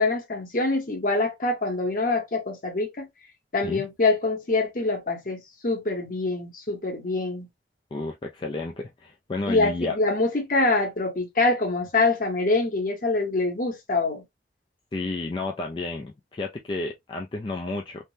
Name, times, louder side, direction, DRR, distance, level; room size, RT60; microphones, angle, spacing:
voice 1, 0.0-3.1 3.5-7.5 9.5-14.2, left 3 dB, 50° left, 1.0 m, -25 dB
voice 2, 7.9-10.0 14.9-18.1, left 2 dB, 25° left, 0.3 m, -31 dB
3.4 x 2.1 x 2.7 m
head